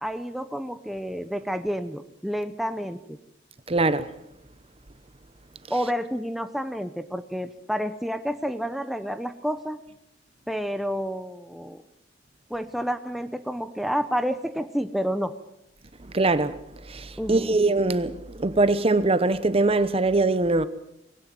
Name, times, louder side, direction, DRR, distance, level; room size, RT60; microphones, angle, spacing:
voice 1, 0.0-3.2 5.7-9.8 10.5-11.8 12.5-15.3 17.2-17.6, equal, ahead, 0.8 m, -29 dB
voice 2, 3.7-4.1 16.1-16.6 16.9-20.7, right 2 dB, 30° right, 0.9 m, -22 dB
20.5 x 18.0 x 7.6 m
head